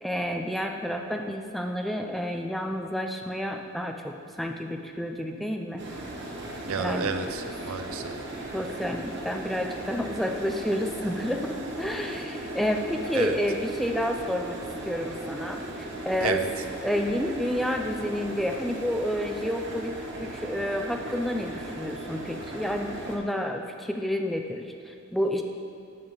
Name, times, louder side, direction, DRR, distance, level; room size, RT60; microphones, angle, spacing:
voice 1, 0.0-5.9 6.8-7.1 8.5-14.6 14.9-16.4 16.8-25.4, equal, ahead, 3 dB, 0.4 m, -30 dB
sound 1, 5.8-23.2, right 1 dB, 55° right, 1.1 m, -37 dB
voice 2, 6.6-8.2 13.1-13.4 16.2-16.5, right 5 dB, 75° right, 8 dB, 0.5 m, -31 dB
10.5 x 3.6 x 7.2 m, 2.4 s
head